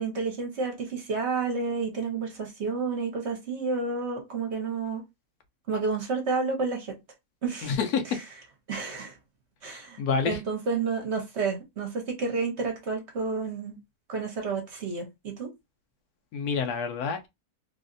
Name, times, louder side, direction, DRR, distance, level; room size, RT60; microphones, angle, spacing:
voice 1, 0.0-5.0 5.7-6.9 7.4-7.7 8.1-8.2 8.7-9.2 9.6-10.0 10.2-13.8 14.1-15.5, right 4 dB, 50° right, 1.1 m, -30 dB
voice 2, 7.6-8.2 10.0-10.4 16.3-17.3, left 6 dB, 85° left, 1.2 m, -27 dB
3.2 x 2.6 x 2.5 m
omnidirectional pair, 1.6 m